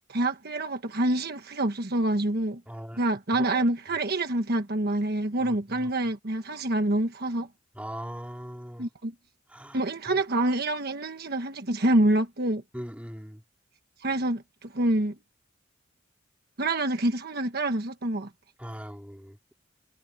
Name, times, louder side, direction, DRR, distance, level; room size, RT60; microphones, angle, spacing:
voice 1, 0.1-2.6 3.0-7.5 8.8-9.1 9.7-12.6 14.0-15.1 16.6-18.3, right 1 dB, 50° right, 1.3 m, -26 dB
voice 2, 2.7-3.0 3.4-3.5 5.4-5.9 7.7-8.9 9.5-9.8 10.1-10.2 12.7-13.4 18.6-19.4, equal, 5° right, 3.7 m, -40 dB
head